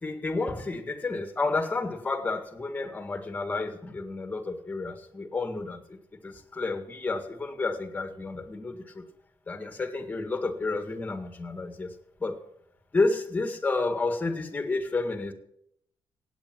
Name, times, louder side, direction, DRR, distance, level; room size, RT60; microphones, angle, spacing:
voice 1, 0.0-6.0 6.2-9.0 9.5-11.9 12.2-12.4 12.9-15.3, left 3 dB, 20° left, 7 dB, 1.9 m, -30 dB
17.5 x 8.6 x 6.1 m, 0.71 s
cardioid pair, 150°, 9 cm